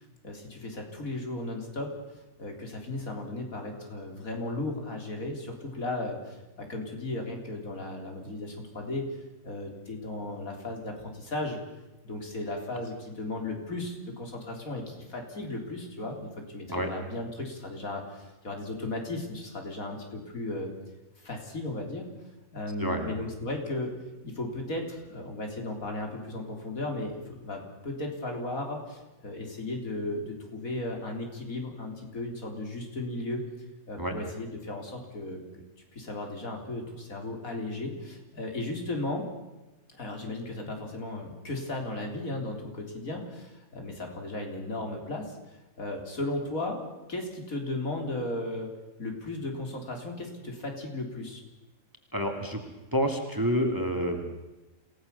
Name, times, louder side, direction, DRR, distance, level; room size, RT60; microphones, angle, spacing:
voice 1, 0.2-1.9 2.4-9.1 9.4-11.6 12.0-20.7 21.2-22.1 22.5-23.9 24.2-33.4 33.9-35.6 35.9-39.3 40.0-45.4 45.8-46.8 47.1-48.7 49.0-51.4, left 2 dB, 75° left, 3 dB, 4.0 m, -35 dB
voice 2, 22.8-23.1 34.0-34.1 52.1-52.6 52.9-54.2, equal, 15° right, 3 dB, 2.6 m, -28 dB
27.5 x 17.5 x 6.9 m, 1.1 s
omnidirectional pair, 1.5 m